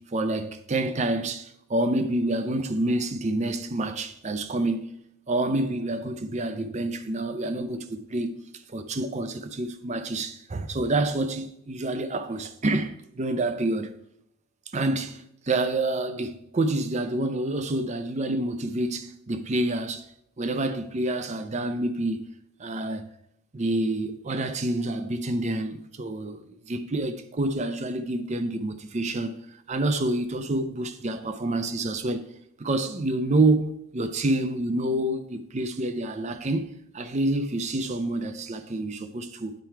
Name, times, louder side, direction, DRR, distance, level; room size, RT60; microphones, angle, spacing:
voice 1, 0.0-4.9 5.3-13.9 14.7-20.1 20.4-22.3 22.6-23.1 23.5-32.3 32.6-39.5, right 2 dB, 30° right, 0.5 m, -28 dB
9.0 x 4.6 x 4.5 m
head